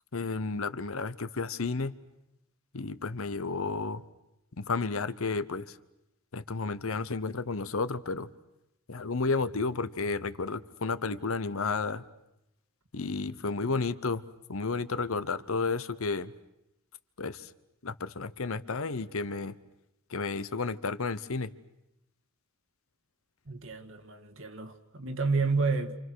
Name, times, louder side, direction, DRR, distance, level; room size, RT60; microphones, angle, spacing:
voice 1, 0.1-1.9 2.7-4.0 4.6-5.8 6.3-8.3 8.9-12.0 12.9-14.2 14.5-16.3 17.2-17.5 17.8-19.6 20.1-21.5, left 4 dB, 75° left, 1.0 m, -32 dB
voice 2, 23.5-26.0, right 4 dB, 65° right, 1.8 m, -30 dB
28.0 x 28.0 x 6.4 m
head